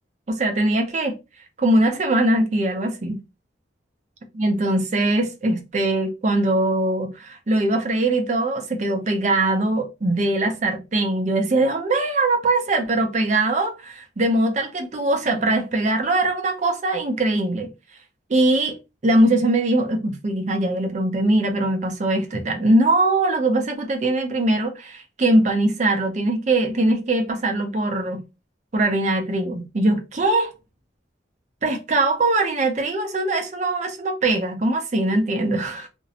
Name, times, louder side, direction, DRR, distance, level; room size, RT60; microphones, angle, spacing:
voice 1, 0.3-1.2 1.6-3.2 4.3-17.7 18.3-18.8 19.0-28.2 28.7-30.5 31.6-35.9, right 2 dB, 40° right, 0.5 m, -21 dB
2.5 x 2.0 x 2.7 m
head